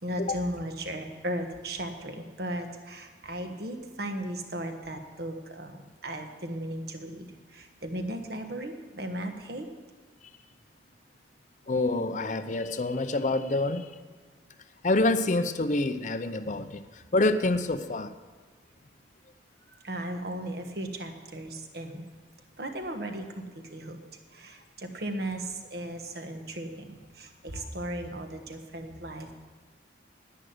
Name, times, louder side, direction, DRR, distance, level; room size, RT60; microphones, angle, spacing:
voice 1, 0.0-9.7 19.7-22.1 22.6-24.0 24.3-29.3, right 1 dB, 55° right, 5 dB, 1.3 m, -36 dB
voice 2, 11.7-14.0 14.8-18.1, left 2 dB, 40° left, 10 dB, 0.6 m, -27 dB
11.0 x 9.7 x 7.8 m, 1.5 s
head